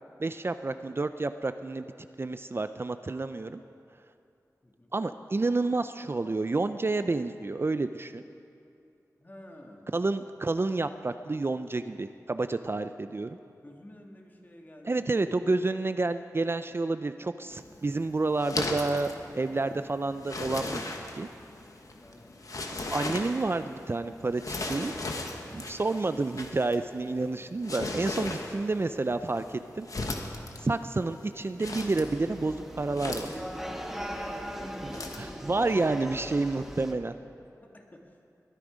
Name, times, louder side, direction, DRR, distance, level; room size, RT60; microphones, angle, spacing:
voice 1, 0.2-1.9 2.2-3.6 4.9-8.2 9.9-13.3 14.8-19.1 19.3-20.8 21.2-21.3 22.7-24.9 25.5-29.9 30.6-33.3 34.8-37.1, right 3 dB, 40° right, 10 dB, 0.4 m, -29 dB
voice 2, 4.6-4.9 9.2-10.1 13.6-15.3 22.0-22.4 34.0-34.7 36.3-36.4 37.6-38.2, left 1 dB, 30° left, 1 dB, 2.0 m, -51 dB
sound 1, 17.5-35.3, left 2 dB, 65° left, 1.3 m, -38 dB
sound 2, 31.6-36.9, equal, 5° right, 1.4 m, -39 dB
21.0 x 10.0 x 5.1 m, 2.6 s
wide cardioid pair, 50°, 6 cm